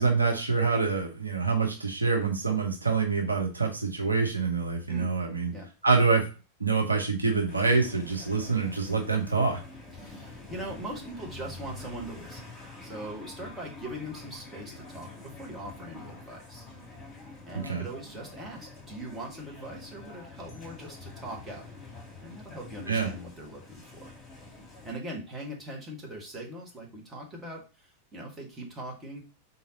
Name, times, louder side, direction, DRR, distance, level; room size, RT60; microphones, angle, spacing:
voice 1, 0.0-5.5 5.8-6.3 6.6-9.6 17.6-17.8 22.9-23.1, right 4 dB, 80° right, 3 dB, 0.7 m, -26 dB
sound 1, 7.5-24.9, left 3 dB, 15° left, 2.5 m, -46 dB
voice 2, 10.0-12.5 12.8-16.6 17.4-21.7 22.2-24.1 24.4-24.5 24.8-29.2, right 1 dB, 15° right, -1 dB, 1.4 m, -41 dB
3.8 x 2.7 x 4.0 m, 0.32 s
figure-of-eight pair, 90°, 0 cm